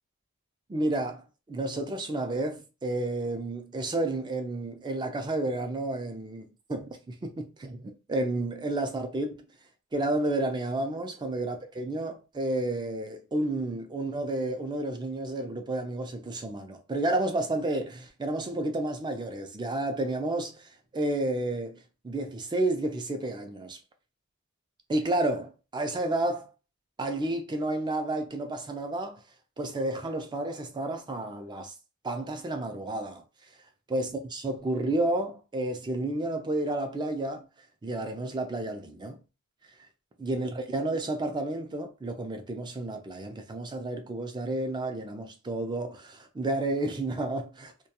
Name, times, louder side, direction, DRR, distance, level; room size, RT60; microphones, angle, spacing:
voice 1, 0.7-1.2 1.5-9.4 9.9-21.8 22.0-23.8 24.9-26.5 27.0-29.2 29.6-31.7 32.0-33.2 33.9-37.4 37.8-39.2 40.2-47.7, right 2 dB, 20° right, 0.4 m, -31 dB
2.2 x 2.2 x 2.8 m
head